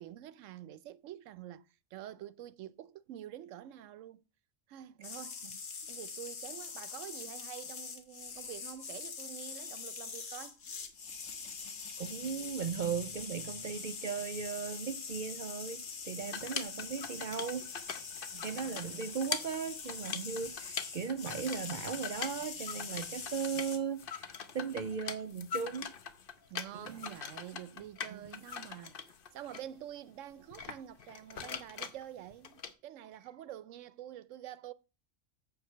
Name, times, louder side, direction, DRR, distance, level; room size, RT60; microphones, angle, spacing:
voice 1, 0.0-4.2 4.7-5.4 5.8-10.6 18.3-19.1 26.5-34.7, right 12 dB, 85° right, 1.0 m, -47 dB
sound 1, 5.0-23.8, left 5 dB, 85° left, 1.6 m, -44 dB
voice 2, 12.0-17.7 18.4-25.9 26.7-27.2 28.1-28.4, right 6 dB, 55° right, 0.6 m, -37 dB
sound 2, 16.3-29.6 30.5-32.7, left 7 dB, 50° left, 0.9 m, -43 dB
7.6 x 4.7 x 6.5 m
omnidirectional pair, 1.3 m